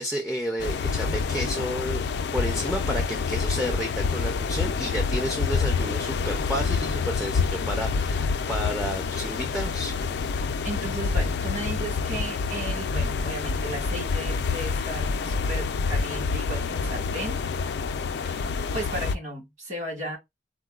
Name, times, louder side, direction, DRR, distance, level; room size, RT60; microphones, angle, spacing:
voice 1, 0.0-2.0 2.3-10.0, equal, ahead, 0.4 m, -31 dB
sound 1, 0.6-19.2, left 4 dB, 75° left, 0.3 m, -27 dB
voice 2, 10.6-17.4 18.2-20.2, right 1 dB, 45° right, 1.5 m, -35 dB
3.8 x 2.1 x 2.3 m
head